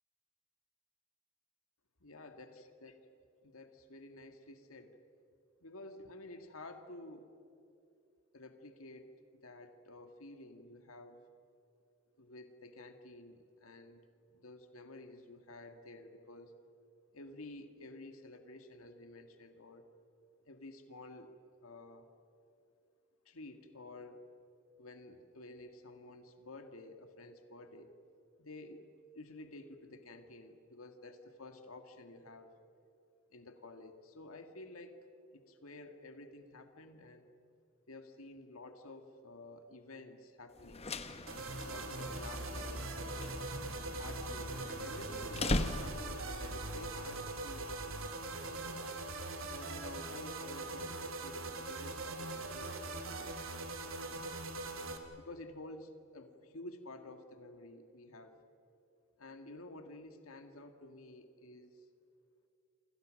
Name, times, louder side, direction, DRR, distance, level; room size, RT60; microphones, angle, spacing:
voice 1, 2.0-3.0 3.4-5.0 5.6-7.3 8.3-9.1 9.4-11.2 12.2-14.0 14.3-16.5 17.1-19.9 20.4-22.1 23.3-24.2 24.8-28.0 28.4-28.8 29.1-32.5 33.3-35.0 35.3-37.3 37.9-40.9 41.6-43.4 43.9-47.7 48.4-48.9 49.5-53.4 54.0-54.4 55.2-58.4 59.2-61.9, left 2 dB, 90° left, 7 dB, 1.9 m, -51 dB
sound 1, 40.6-46.3, left 2 dB, 30° left, 1.2 m, -40 dB
sound 2, 41.3-55.0, right 2 dB, 75° right, 2.6 m, -41 dB
29.5 x 26.5 x 6.5 m, 2.6 s
head